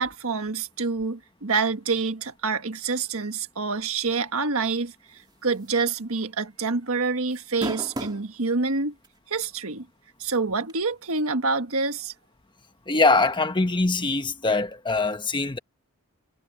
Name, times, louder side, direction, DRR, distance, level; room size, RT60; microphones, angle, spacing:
voice 1, 0.0-4.9 5.4-8.9 9.3-9.8 10.2-12.1, right 4 dB, 70° right, 1.6 m, -27 dB
sound 1, 5.6-5.9 6.2-6.3 7.3-8.3 9.0-9.1 10.7-10.8, right 1 dB, 20° right, 2.7 m, -32 dB
voice 2, 12.9-15.6, left 3 dB, 20° left, 1.2 m, -23 dB
head